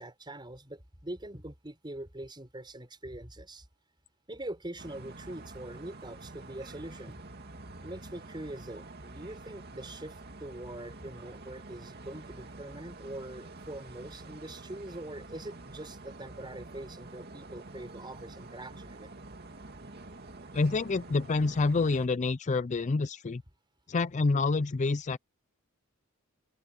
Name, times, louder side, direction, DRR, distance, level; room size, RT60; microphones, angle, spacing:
voice 1, 0.0-3.7 4.3-7.2 7.8-19.1, right 1 dB, 20° right, 5.4 m, -43 dB
sound 1, 4.8-22.1, right 2 dB, 50° right, 2.4 m, -47 dB
voice 2, 20.5-23.4 23.9-25.2, left 3 dB, 35° left, 0.5 m, -27 dB
open air
head